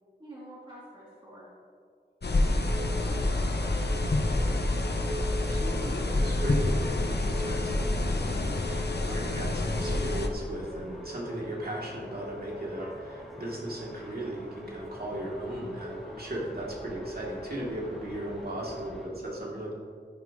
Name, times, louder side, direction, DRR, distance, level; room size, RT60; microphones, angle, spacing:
voice 1, 0.2-1.5 2.8-4.1, right 1 dB, 25° right, -8 dB, 2.8 m, -48 dB
sound 1, 2.2-10.3, left 2 dB, 65° left, 0.9 m, -28 dB
sound 2, 2.2-19.1, equal, ahead, 2.3 m, -49 dB
sound 3, 2.5-18.7, equal, 35° left, 3.0 m, -42 dB
voice 2, 5.5-19.7, right 1 dB, 55° right, -4 dB, 2.8 m, -37 dB
14.0 x 9.9 x 3.1 m, 2.1 s
wide cardioid pair, 50°, 19 cm